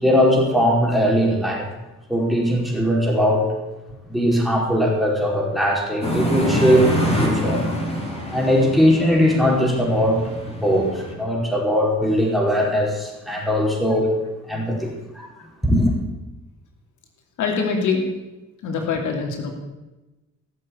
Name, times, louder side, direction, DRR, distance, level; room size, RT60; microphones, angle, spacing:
voice 1, 0.0-1.7 2.1-3.5 4.1-6.9 7.2-7.6 8.3-14.1 14.5-15.3 15.6-15.9, equal, ahead, -1 dB, 4.7 m, -20 dB
sound 1, 6.0-11.1, equal, 20° left, 4.3 m, -26 dB
voice 2, 17.4-18.0 18.6-19.5, left 5 dB, 75° left, 2 dB, 2.8 m, -23 dB
16.5 x 7.6 x 8.5 m, 1.1 s
cardioid pair, 90°, 30 cm